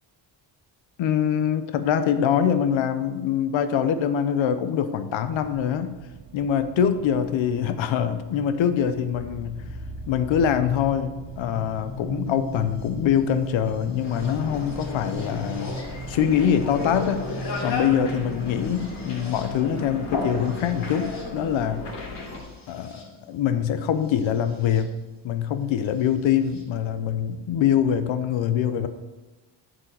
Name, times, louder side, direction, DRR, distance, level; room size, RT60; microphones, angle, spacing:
voice 1, 1.0-5.9 6.3-9.7 10.1-15.8 16.1-17.2 17.6-21.8 22.7-24.9 25.2-28.9, left 9 dB, 80° left, 10 dB, 0.9 m, -24 dB
sound 1, 5.2-18.1, right 8 dB, 60° right, 0.9 m, -47 dB
sound 2, 9.1-24.8 26.0-26.6, equal, 35° left, 3.1 m, -38 dB
sound 3, 14.0-22.4, left 3 dB, 60° left, 3.3 m, -34 dB
11.0 x 5.1 x 6.8 m, 1.2 s
cardioid pair, 120°, 46 cm